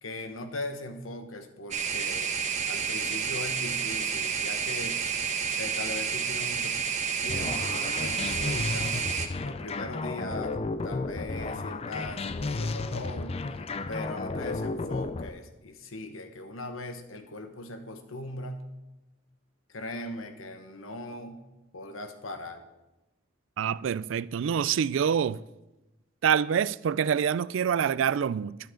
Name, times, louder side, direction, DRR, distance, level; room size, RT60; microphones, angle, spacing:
voice 1, 0.0-2.3 2.7-5.0 5.5-6.7 7.2-9.0 9.4-13.4 13.9-18.7 19.7-21.4 21.7-22.7, left 2 dB, 85° left, 1.3 m, -39 dB
sound 1, 1.7-9.3, right 6 dB, 35° right, 1.0 m, -30 dB
sound 2, 7.3-15.3, left 3 dB, 30° left, 0.5 m, -33 dB
voice 2, 23.6-25.4 26.2-28.6, right 7 dB, 70° right, 0.3 m, -26 dB
12.5 x 11.5 x 3.8 m
head